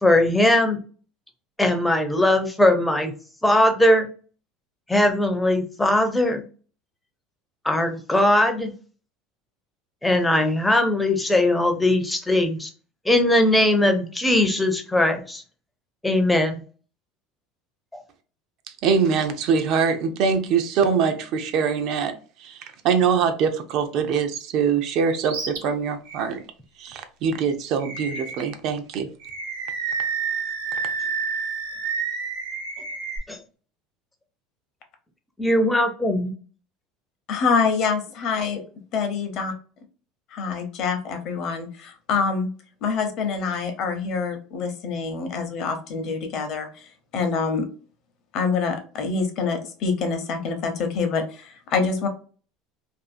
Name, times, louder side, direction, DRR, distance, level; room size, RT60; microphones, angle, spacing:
voice 1, 0.0-0.8 1.6-3.1 3.4-4.1 4.9-6.4 7.6-8.7 10.0-12.7 13.1-15.4 16.0-16.6 17.9-18.0 33.3-33.4 35.4-36.3, left 1 dB, 5° left, 5 dB, 0.4 m, -20 dB
voice 2, 18.8-26.4 26.8-29.1, right 6 dB, 50° right, 7 dB, 0.4 m, -23 dB
Animal, 25.2-25.6 26.1-26.2 27.8-28.6 29.2-33.2, right 5 dB, 90° right, 0.9 m, -29 dB
voice 3, 37.3-38.6 38.9-39.5 40.3-42.5 42.8-46.7 47.1-47.7 48.3-52.1, left 5 dB, 50° left, 6 dB, 0.6 m, -25 dB
2.5 x 2.4 x 2.5 m, 0.39 s
cardioid pair, 150°, 0 cm